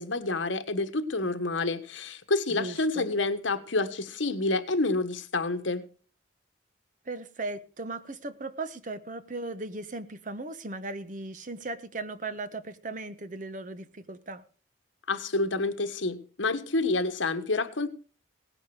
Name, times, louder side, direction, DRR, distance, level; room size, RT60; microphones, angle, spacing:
voice 1, 0.0-5.8 15.1-17.9, left 3 dB, 75° left, 10 dB, 1.4 m, -28 dB
voice 2, 2.5-3.1 7.0-14.4, right 2 dB, 40° right, 12 dB, 1.0 m, -37 dB
17.5 x 10.5 x 4.9 m, 0.40 s
head